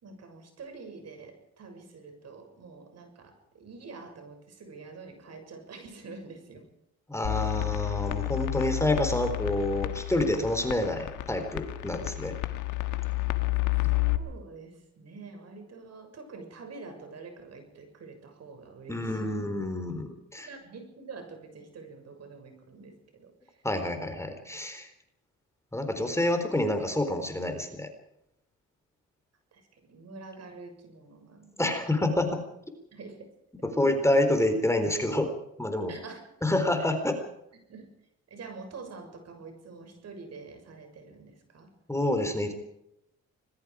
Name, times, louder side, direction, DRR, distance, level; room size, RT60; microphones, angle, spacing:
voice 1, 0.0-6.6 7.4-7.5 13.7-19.4 20.4-23.6 29.5-31.7 32.9-33.3 33.6-33.7 35.9-36.2 36.8-36.9 37.7-37.9 38.3-41.7, right 4 dB, 55° right, 6 dB, 6.7 m, -46 dB
voice 2, 7.1-12.3 18.9-20.5 23.6-24.9 25.7-27.9 31.6-32.4 33.6-35.3 35.6-35.9 36.4-37.2 41.9-42.5, left 1 dB, 10° left, 6 dB, 3.9 m, -28 dB
sound 1, 7.2-14.2, left 19 dB, 90° left, 1.7 m, -30 dB
25.5 x 21.0 x 5.0 m, 0.82 s
cardioid pair, 90°, 30 cm